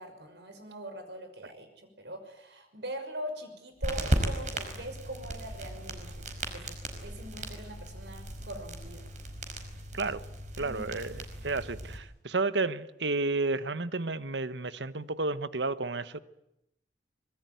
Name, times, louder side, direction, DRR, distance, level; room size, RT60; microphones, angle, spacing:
voice 1, 0.0-6.7 7.0-9.1 10.6-10.8, right 1 dB, 75° right, 5.9 m, -42 dB
sound 1, 3.8-12.0, right 1 dB, 45° right, 5.0 m, -36 dB
voice 2, 10.6-16.2, right 3 dB, 90° right, 1.2 m, -31 dB
25.5 x 21.5 x 9.4 m
head